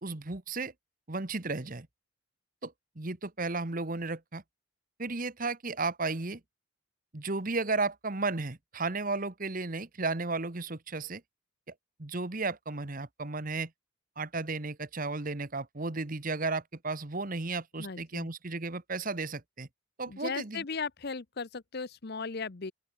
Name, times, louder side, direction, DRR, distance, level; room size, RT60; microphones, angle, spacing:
voice 1, 0.0-0.7 1.1-1.9 2.6-4.4 5.0-6.4 7.1-11.2 12.0-13.7 14.2-19.7 20.0-20.6, right 3 dB, 40° right, 1.3 m, -34 dB
voice 2, 17.8-18.3 20.1-22.7, left 4 dB, 50° left, 0.8 m, -37 dB
open air
head